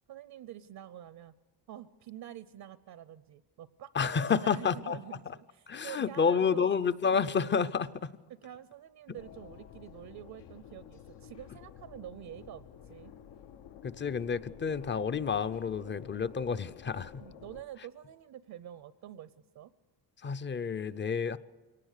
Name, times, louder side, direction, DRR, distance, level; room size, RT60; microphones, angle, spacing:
voice 1, 0.1-1.3 1.7-6.7 7.1-7.5 8.3-13.1 17.2-19.7, right 11 dB, 60° right, 16 dB, 0.7 m, -47 dB
voice 2, 3.9-5.0 5.7-8.1 13.8-17.2 20.2-21.4, left 6 dB, 30° left, 14 dB, 0.5 m, -30 dB
sound 1, 9.2-17.6, left 9 dB, 80° left, 1.0 m, -51 dB
23.5 x 18.5 x 6.6 m, 1.4 s
cardioid pair, 120°, 41 cm